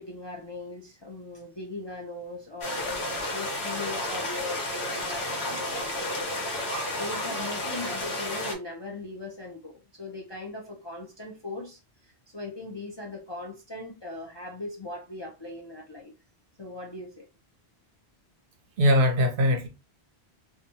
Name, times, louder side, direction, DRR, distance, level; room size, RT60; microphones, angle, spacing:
voice 1, 0.0-3.0 3.3-16.1 16.6-17.3, left 2 dB, 35° left, 0.4 m, -39 dB
sound 1, 2.6-8.5, left 1 dB, 75° left, 1.1 m, -32 dB
voice 2, 5.5-5.8 6.7-7.7 18.8-19.7, left 1 dB, 60° right, 0.7 m, -25 dB
2.8 x 2.2 x 2.6 m
omnidirectional pair, 1.1 m